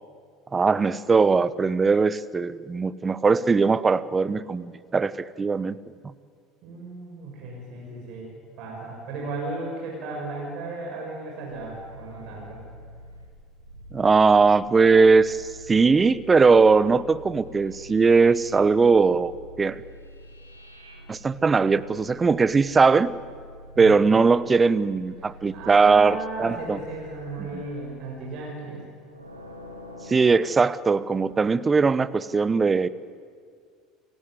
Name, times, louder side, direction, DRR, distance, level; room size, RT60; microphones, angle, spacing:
voice 1, 0.5-5.7 13.9-19.8 21.1-23.1 23.8-26.8 27.5-27.6 30.1-32.9, right 4 dB, 20° right, 18 dB, 0.9 m, -20 dB
voice 2, 6.6-8.3 8.6-12.6 23.7-24.0 25.2-28.8, right 3 dB, 55° right, -2 dB, 6.5 m, -35 dB
sound 1, 11.5-28.0 28.9-30.6, left 1 dB, 90° right, 3.0 m, -46 dB
29.5 x 16.0 x 9.7 m, 2.1 s
figure-of-eight pair, 65°, 0 cm